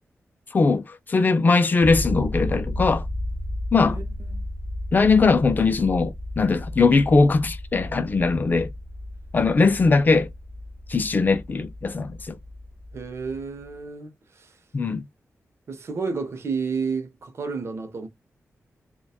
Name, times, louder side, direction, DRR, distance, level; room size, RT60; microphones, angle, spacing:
voice 1, 0.5-3.0 3.7-4.0 4.9-8.7 9.3-10.3 10.9-12.4 14.7-15.0, left 4 dB, 35° left, 0.3 m, -20 dB
sound 1, 1.8-13.7, left 1 dB, 20° right, 0.8 m, -33 dB
voice 2, 3.8-4.5 12.9-14.1 14.4-14.5 15.7-18.1, right 5 dB, 55° right, 0.6 m, -31 dB
2.7 x 2.2 x 2.3 m
wide cardioid pair, 110°, 5 cm